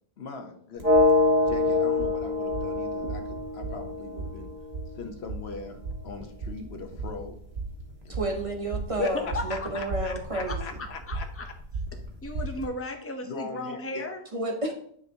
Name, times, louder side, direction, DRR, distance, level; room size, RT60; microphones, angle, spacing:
voice 1, 0.2-1.0 1.5-4.5 5.0-5.8 6.0-7.4 8.0-8.1 9.0-11.5 13.2-14.1, left 4 dB, 80° left, 6 dB, 1.2 m, -39 dB
sound 1, 0.8-4.8, left 3 dB, 60° right, 2.8 m, -25 dB
sound 2, 0.8-12.7, right 3 dB, 75° right, 1.5 m, -37 dB
voice 2, 8.1-10.9 14.3-14.7, right 1 dB, 35° right, 3 dB, 0.9 m, -31 dB
voice 3, 9.3-9.7 10.5-11.5 11.9-14.2, left 1 dB, 15° left, 5 dB, 0.7 m, -36 dB
9.4 x 5.6 x 2.8 m, 0.63 s
omnidirectional pair, 1.1 m